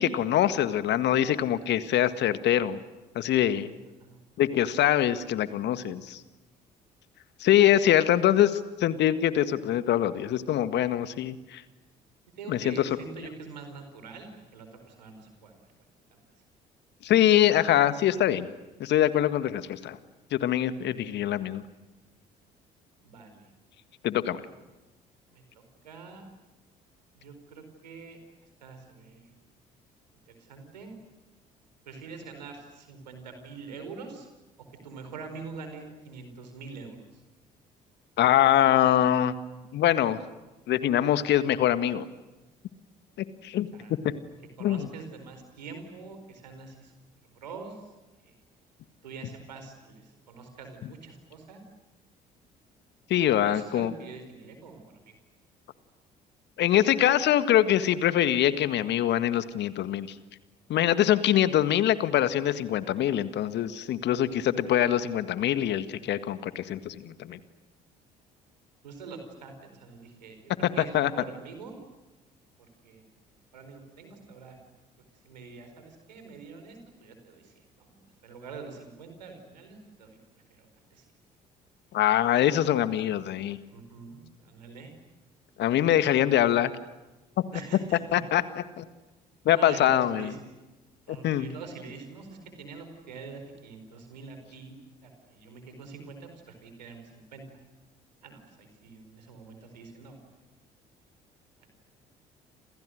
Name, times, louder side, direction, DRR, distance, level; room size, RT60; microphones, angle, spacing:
voice 1, 0.0-2.8 3.1-3.7 4.4-6.2 7.4-11.6 12.5-12.7 17.0-18.5 18.8-20.0 20.3-21.6 24.0-24.4 38.2-39.3 39.7-40.2 40.7-42.0 43.4-43.7 44.6-44.9 53.1-53.9 56.6-60.1 60.7-67.4 70.9-71.1 81.9-83.6 85.6-86.7 88.1-88.4 88.8-88.9 89.4-90.3 91.1-91.5, left 11 dB, 55° left, 12 dB, 1.8 m, -24 dB
voice 2, 12.4-15.7 16.1-16.2 23.0-23.5 25.3-26.3 27.1-28.2 28.6-29.3 30.3-31.0 31.8-34.3 34.8-37.2 43.7-43.9 44.6-46.9 47.3-47.9 48.2-48.3 49.0-51.6 53.3-55.1 64.0-64.1 68.8-71.8 72.8-73.1 73.5-74.6 75.2-80.2 80.5-81.0 83.7-84.9 87.5-88.2 89.5-90.4 91.1-97.6 98.2-100.2 101.6-101.7, right 4 dB, 80° right, 6 dB, 4.7 m, -45 dB
30.0 x 28.0 x 6.6 m, 1.1 s
figure-of-eight pair, 50°, 21 cm